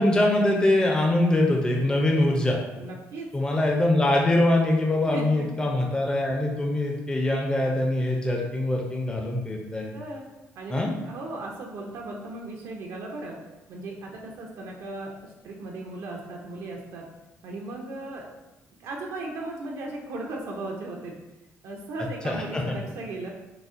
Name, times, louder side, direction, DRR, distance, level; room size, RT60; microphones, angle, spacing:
voice 1, 0.0-2.6 3.3-9.9 10.7-10.9 22.2-22.6, left 1 dB, 15° left, 0 dB, 0.4 m, -23 dB
voice 2, 2.7-3.3 5.1-5.7 9.9-10.2 10.5-13.4 13.7-17.1 17.4-18.2 18.8-21.2 21.6-23.3, right 2 dB, 75° right, 0 dB, 0.5 m, -36 dB
3.9 x 2.1 x 2.5 m, 1.0 s
cardioid pair, 100°, 5 cm